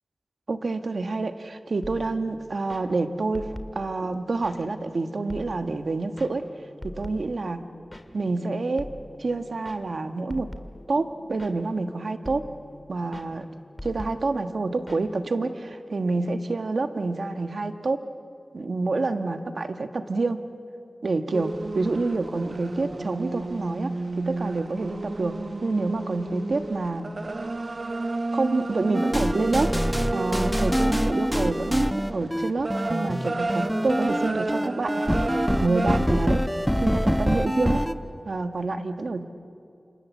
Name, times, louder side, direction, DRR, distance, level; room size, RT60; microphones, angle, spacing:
voice 1, 0.5-3.5 3.7-6.5 6.8-7.6 8.1-8.9 9.2-10.5 10.9-12.5 12.9-13.5 13.8-18.0 18.5-20.4 21.0-27.1 28.3-29.7 30.1-36.4 36.8-37.8 38.2-39.3, right 3 dB, 75° right, 8 dB, 1.3 m, -28 dB
sound 1, 1.8-15.7, left 1 dB, 20° left, 2.0 m, -44 dB
sound 2, 21.3-36.0, right 2 dB, 55° right, 0.9 m, -32 dB
sound 3, 28.9-37.9, equal, 5° left, 1.1 m, -25 dB
28.0 x 26.0 x 7.3 m, 2.5 s
cardioid pair, 45°, 0 cm